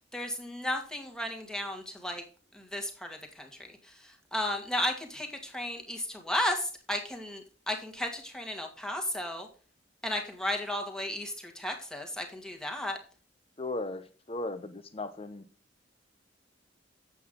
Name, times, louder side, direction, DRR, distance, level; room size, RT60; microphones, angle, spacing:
voice 1, 0.1-2.2 2.5-9.5 10.0-13.0, left 1 dB, 5° left, 1.7 m, -34 dB
voice 2, 13.6-15.4, left 2 dB, 30° left, 0.9 m, -37 dB
8.3 x 7.9 x 3.7 m
head